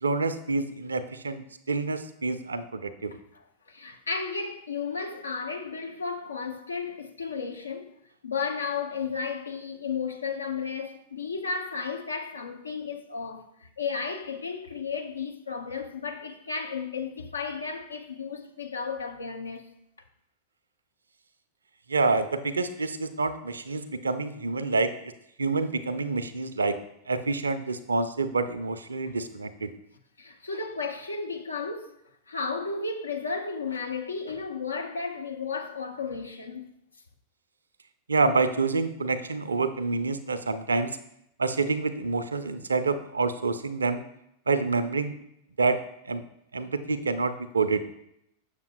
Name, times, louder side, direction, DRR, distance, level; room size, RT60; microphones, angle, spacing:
voice 1, 0.0-3.1 21.9-25.1 25.4-26.8 27.1-29.7 38.1-41.0 41.4-44.0 44.5-45.2 45.6-45.8 46.1-46.2 46.5-47.8, right 3 dB, 75° right, 0.4 m, -27 dB
voice 2, 3.7-7.9 8.2-19.7 29.1-29.2 30.2-31.9 32.3-36.7, left 5 dB, 75° left, 0.6 m, -33 dB
6.9 x 6.6 x 2.2 m
figure-of-eight pair, 90°, 0 cm